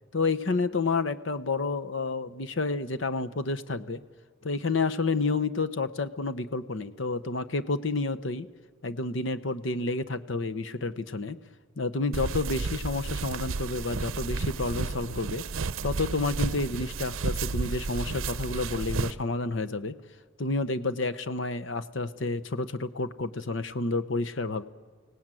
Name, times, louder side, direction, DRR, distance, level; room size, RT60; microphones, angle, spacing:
voice 1, 0.1-4.0 4.4-8.5 8.8-11.4 11.8-15.4 15.8-19.9 20.4-24.6, left 3 dB, 65° left, 10 dB, 0.9 m, -30 dB
sound 1, 12.1-19.1, right 4 dB, 80° right, 0.6 m, -32 dB
29.5 x 17.5 x 9.1 m, 1.6 s
head